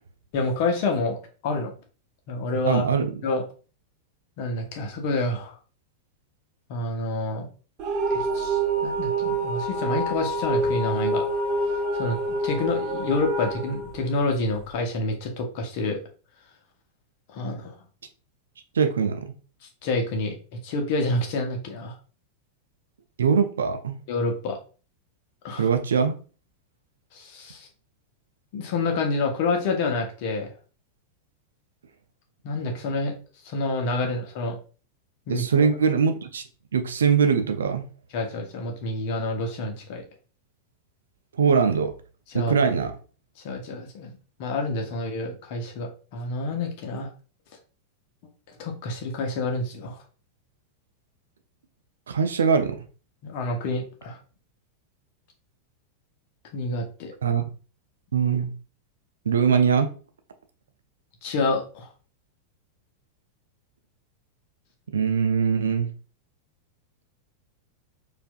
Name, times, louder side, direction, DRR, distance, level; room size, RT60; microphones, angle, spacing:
voice 1, 0.3-1.2 1.4-1.7 2.3-2.8 3.2-3.4 4.4-5.6 6.7-7.5 8.1-11.2 11.9-16.0 17.3-17.7 19.8-20.3 20.6-22.0 24.1-24.6 25.4-25.7 27.1-27.7 28.5-30.5 32.4-33.1 33.4-34.6 35.3-35.7 38.1-40.0 42.3-42.7 43.4-47.1 48.6-50.0 53.2-54.2 56.5-57.1 61.2-61.9, left 2 dB, 45° left, 0.9 m, -28 dB
voice 2, 2.7-3.2 18.7-19.3 23.2-24.0 25.5-26.2 35.3-36.4 36.7-37.8 41.4-41.9 42.3-42.9 52.1-52.8 57.2-57.4 58.1-58.5 59.3-59.9 64.9-65.9, right 6 dB, 65° right, 0.4 m, -22 dB
sound 1, 7.8-14.7, right 2 dB, 35° right, 0.8 m, -27 dB
4.3 x 2.6 x 2.3 m
figure-of-eight pair, 90°, 0 cm